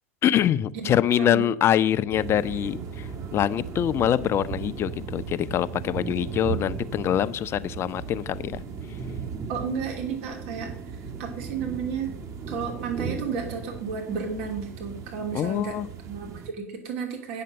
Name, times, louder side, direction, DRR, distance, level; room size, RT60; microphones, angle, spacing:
voice 1, 0.2-8.6 15.3-15.9, left 10 dB, 35° left, 14 dB, 0.6 m, -24 dB
voice 2, 0.7-1.5 9.5-10.7 11.2-12.1 12.5-15.8 16.0-17.4, right 6 dB, 65° right, 2 dB, 2.9 m, -32 dB
sound 1, 2.1-16.5, right 6 dB, 40° right, 1.9 m, -36 dB
8.8 x 6.7 x 6.7 m, 0.65 s
hypercardioid pair, 90°, 8 cm